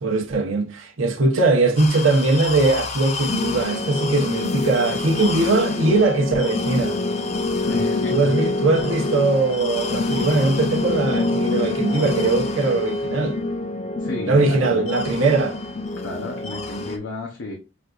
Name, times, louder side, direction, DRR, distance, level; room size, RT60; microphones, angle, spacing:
voice 1, 0.0-7.0 8.1-13.4 14.3-15.6, right 3 dB, 85° right, 0.8 m, -20 dB
sound 1, 1.8-17.0, left 3 dB, 35° left, 0.4 m, -26 dB
voice 2, 7.6-8.3 14.0-14.9 16.0-17.6, left 2 dB, 75° left, 0.7 m, -33 dB
6.1 x 2.6 x 2.3 m
head